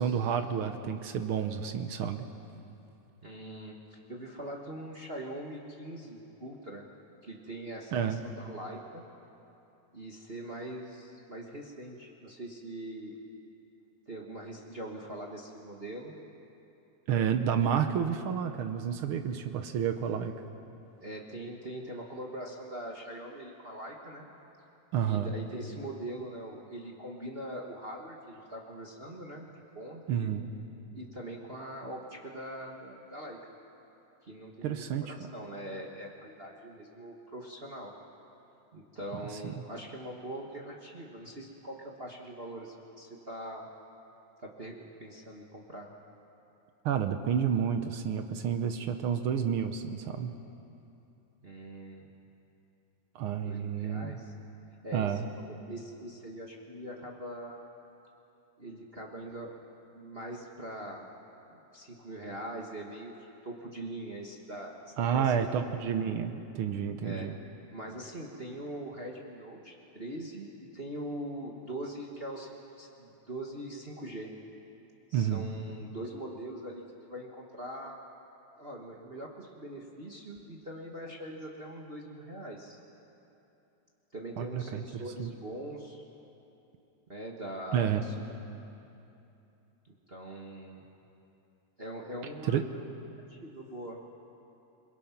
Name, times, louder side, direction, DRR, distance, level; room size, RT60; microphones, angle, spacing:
voice 1, 0.0-2.2 7.9-8.2 17.1-20.4 24.9-25.3 30.1-30.5 34.6-35.1 46.8-50.3 53.1-54.2 54.9-55.2 65.0-67.4 75.1-75.5 84.4-84.8 85.2-85.3 87.7-88.0 92.5-92.6, right 8 dB, 70° right, 7 dB, 1.3 m, -30 dB
voice 2, 3.2-6.8 7.2-9.1 9.9-13.2 14.1-16.2 21.0-24.3 25.0-30.3 30.9-33.4 34.2-37.9 38.7-43.7 44.4-45.9 51.4-52.1 53.4-54.3 54.8-55.2 55.5-57.6 58.6-59.6 59.9-61.1 61.5-65.3 67.0-67.3 67.7-74.3 75.1-76.8 77.1-78.0 78.6-82.8 84.1-86.0 87.1-88.1 90.1-90.9 91.8-92.8 93.3-94.0, right 1 dB, 35° right, -1 dB, 1.0 m, -42 dB
27.5 x 21.5 x 5.9 m, 2.8 s
omnidirectional pair, 3.3 m